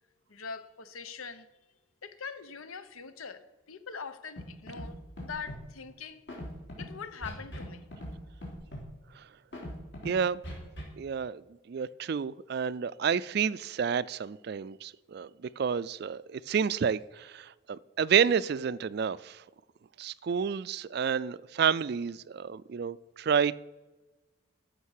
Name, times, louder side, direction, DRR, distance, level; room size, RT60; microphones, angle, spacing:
voice 1, 0.3-1.5 2.0-6.2 6.8-7.9, left 5 dB, 90° left, 0.9 m, -43 dB
Scratching (performance technique), 4.4-4.5 4.7-4.9 5.2-5.6 6.3-6.8 7.2-7.7 7.9-8.1 8.4-8.8 9.5-10.1 10.4-10.8, equal, 55° left, 3.5 m, -39 dB
voice 2, 10.0-10.4 11.0-11.4 11.7-19.4 20.0-23.6, right 7 dB, 50° right, 0.3 m, -30 dB
14.0 x 5.3 x 6.5 m
head